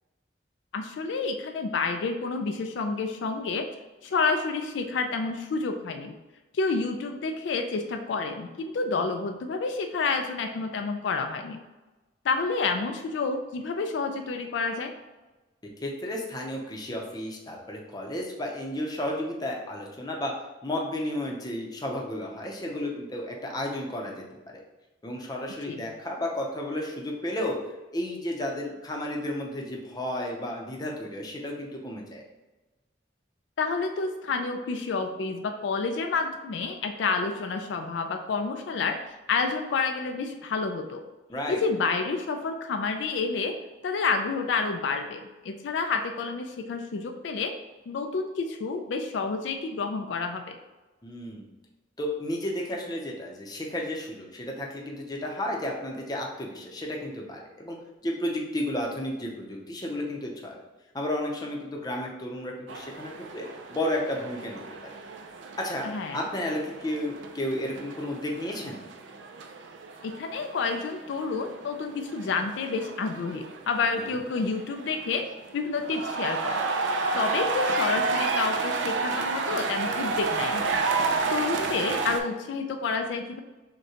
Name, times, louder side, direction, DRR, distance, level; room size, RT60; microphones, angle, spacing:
voice 1, 0.7-3.7 4.0-6.1 6.5-11.6 12.2-14.9 25.7-25.8 33.6-39.0 39.3-41.0 41.5-43.6 43.8-47.5 47.9-50.6 65.8-66.2 70.0-75.3 75.5-76.6 77.1-80.7 81.3-83.4, left 4 dB, 75° left, 5 dB, 0.3 m, -29 dB
voice 2, 15.8-20.3 20.6-24.2 25.0-27.6 27.9-32.2 41.3-41.6 51.0-51.5 52.0-57.8 58.0-60.6 60.9-64.6 65.6-68.8 74.0-74.2, left 1 dB, 20° left, -1 dB, 0.6 m, -32 dB
sound 1, 62.7-82.2, right 3 dB, 80° right, 0.4 m, -31 dB
6.3 x 2.2 x 2.8 m, 1.1 s
head